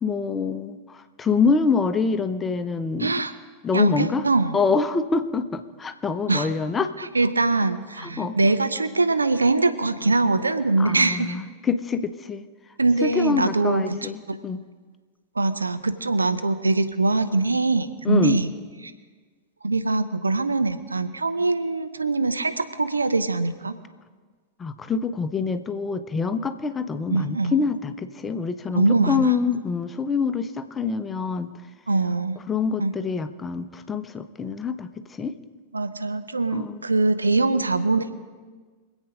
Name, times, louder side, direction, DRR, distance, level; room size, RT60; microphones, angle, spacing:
voice 1, 0.0-3.1 3.6-4.2 4.5-6.9 8.0-8.4 10.8-12.4 13.0-14.2 14.4-14.6 18.0-18.4 24.6-31.5 32.5-34.9 35.2-35.4 36.5-36.8, left 5 dB, 15° left, 10 dB, 0.8 m, -25 dB
voice 2, 3.0-3.3 3.7-4.6 6.3-6.5 7.0-11.4 12.8-14.4 15.4-18.5 19.6-23.8 27.1-27.6 28.7-29.3 31.9-32.4 32.8-32.9 35.7-38.1, right 3 dB, 80° right, 10 dB, 0.8 m, -23 dB
24.5 x 8.3 x 5.1 m, 1.4 s
figure-of-eight pair, 90°, 0 cm